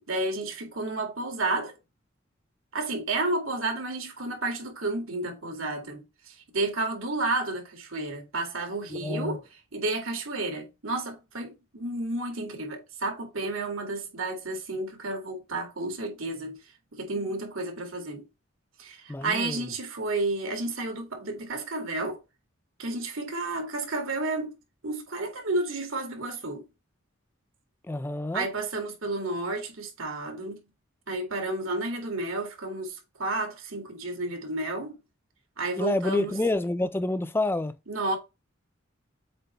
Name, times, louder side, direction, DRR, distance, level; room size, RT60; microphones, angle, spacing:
voice 1, 0.1-1.8 2.7-9.4 9.7-16.6 16.9-18.3 18.8-22.2 22.8-24.6 24.8-26.6 28.3-30.6 31.1-35.0 35.6-36.3 37.9-38.2, right 2 dB, 90° right, 2.1 m, -31 dB
voice 2, 8.9-9.4 19.1-19.7 27.8-28.5 35.8-37.8, left 2 dB, 10° left, 0.3 m, -28 dB
7.6 x 3.0 x 4.4 m
head